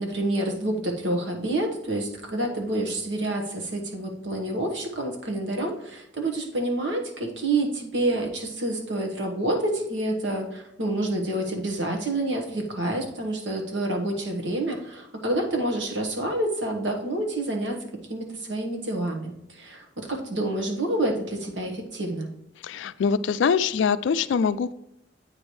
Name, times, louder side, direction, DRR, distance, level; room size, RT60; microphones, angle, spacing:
voice 1, 0.0-17.8 18.1-22.3, right 1 dB, 70° right, 2 dB, 1.3 m, -28 dB
voice 2, 22.6-24.7, left 6 dB, 75° left, 15 dB, 0.3 m, -23 dB
8.6 x 3.2 x 4.4 m, 0.84 s
head